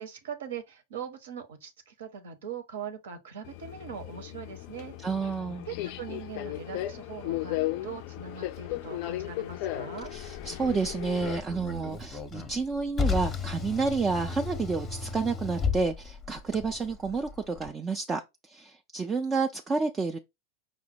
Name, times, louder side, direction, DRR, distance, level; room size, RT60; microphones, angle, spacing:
voice 1, 0.0-5.0 5.7-10.1, right 7 dB, 60° right, 0.9 m, -41 dB
Subway metro underground, 3.4-11.4, left 15 dB, 45° left, 0.3 m, -36 dB
voice 2, 5.0-5.7 10.1-20.2, right 4 dB, 15° right, 0.4 m, -30 dB
Car, 10.0-17.7, left 5 dB, 20° left, 0.7 m, -35 dB
5.3 x 2.1 x 4.5 m
figure-of-eight pair, 90°, 0 cm